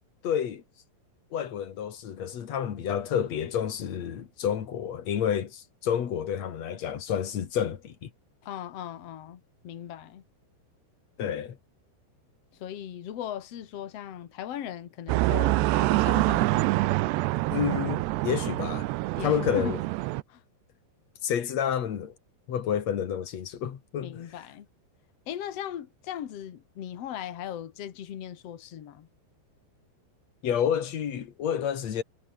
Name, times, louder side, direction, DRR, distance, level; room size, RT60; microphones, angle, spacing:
voice 1, 0.2-0.6 1.3-8.1 11.2-11.6 17.5-18.9 19.2-19.8 21.2-22.1 22.5-24.2 30.4-32.0, left 8 dB, 50° left, 2.3 m, -29 dB
voice 2, 8.4-10.2 12.5-16.7 19.2-19.8 20.3-20.4 24.0-24.7 25.3-29.1, left 10 dB, 75° left, 1.4 m, -38 dB
sound 1, 15.1-20.2, right 19 dB, 80° right, 2.7 m, -26 dB
omnidirectional pair, 5.4 m